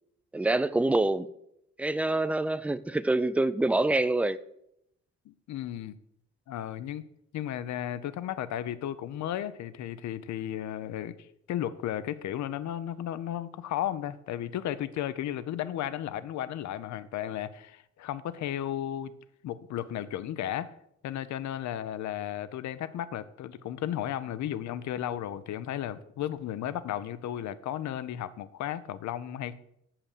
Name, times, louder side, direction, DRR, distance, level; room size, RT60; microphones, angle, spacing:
voice 1, 0.3-1.3 1.8-4.4, right 2 dB, 5° right, 0.4 m, -26 dB
voice 2, 5.3-6.0 6.5-7.0 7.3-19.1 19.4-20.7 21.0-29.5, left 11 dB, 70° left, 0.6 m, -34 dB
7.0 x 5.8 x 6.6 m
cardioid pair, 90°, 30 cm